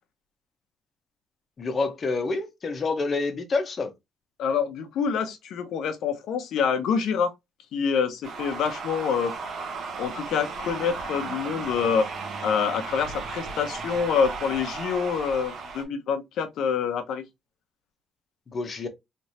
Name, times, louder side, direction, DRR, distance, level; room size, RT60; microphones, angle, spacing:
voice 1, 1.6-3.9 18.5-18.9, left 3 dB, 45° left, 1.1 m, -28 dB
voice 2, 4.4-7.3 7.7-9.3 10.0-12.1 12.4-17.2, left 6 dB, 80° left, 0.8 m, -26 dB
sound 1, 8.2-15.8, right 4 dB, 65° right, 1.2 m, -35 dB
3.4 x 3.2 x 2.8 m
cardioid pair, 90°, 0 cm